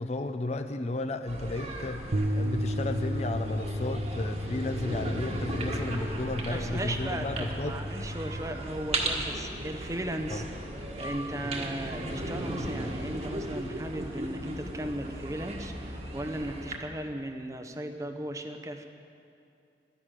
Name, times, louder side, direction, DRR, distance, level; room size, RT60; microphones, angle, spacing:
voice 1, 0.0-7.8 10.3-10.4, left 2 dB, 35° left, 8 dB, 0.6 m, -33 dB
sound 1, 1.3-16.8, right 1 dB, 35° right, 1.5 m, -36 dB
Bass guitar, 2.1-8.4, equal, 70° right, 1.0 m, -33 dB
voice 2, 6.5-10.4 11.0-18.9, right 1 dB, 15° right, 6 dB, 0.8 m, -37 dB
13.5 x 11.0 x 9.1 m, 2.6 s
head